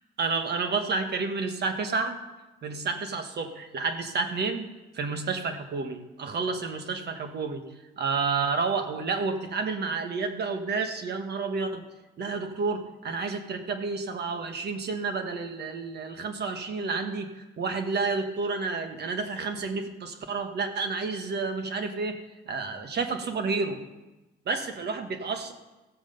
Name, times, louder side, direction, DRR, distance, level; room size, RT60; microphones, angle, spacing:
voice 1, 0.2-2.2 2.6-4.6 4.9-7.6 8.0-11.8 12.2-22.2 22.5-23.8 24.4-25.5, right 4 dB, 55° right, 7 dB, 1.4 m, -30 dB
15.0 x 7.2 x 5.4 m, 1.1 s
cardioid pair, 90°, 20 cm